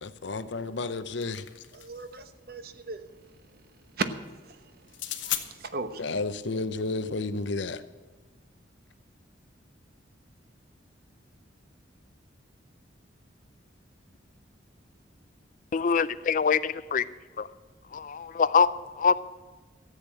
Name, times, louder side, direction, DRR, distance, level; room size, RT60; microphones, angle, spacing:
voice 1, 0.0-1.4 6.0-7.8, left 3 dB, 70° left, 13 dB, 0.8 m, -31 dB
sound 1, 1.0-2.1 4.9-5.5, left 12 dB, 90° left, 1.2 m, -35 dB
voice 2, 1.7-3.0 4.0-4.1 5.2-6.0, right 3 dB, 55° right, 10 dB, 1.0 m, -35 dB
voice 3, 15.7-17.0 17.4-17.5 17.9-19.1, left 6 dB, 45° left, 16 dB, 0.4 m, -24 dB
14.0 x 8.1 x 7.5 m, 1.3 s
head